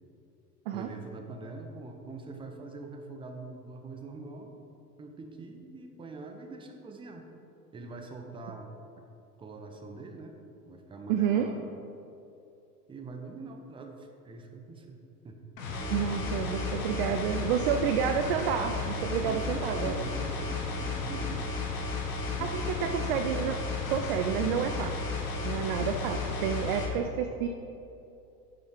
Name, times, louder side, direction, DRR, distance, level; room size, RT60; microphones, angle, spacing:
voice 1, 0.7-4.5 5.0-7.2 7.7-8.7 9.4-10.4 10.7-11.7 12.9-15.4 16.1-17.3 19.3-21.5 22.3-23.1, right 3 dB, 10° right, 3 dB, 0.8 m, -44 dB
voice 2, 11.1-11.5 15.9-20.0 22.4-23.6 23.9-24.9 25.4-27.5, right 8 dB, 35° right, 6 dB, 0.4 m, -29 dB
sound 1, 15.6-26.9, left 3 dB, 60° left, 1.6 m, -33 dB
8.9 x 5.9 x 5.0 m, 2.8 s
figure-of-eight pair, 90°, 47 cm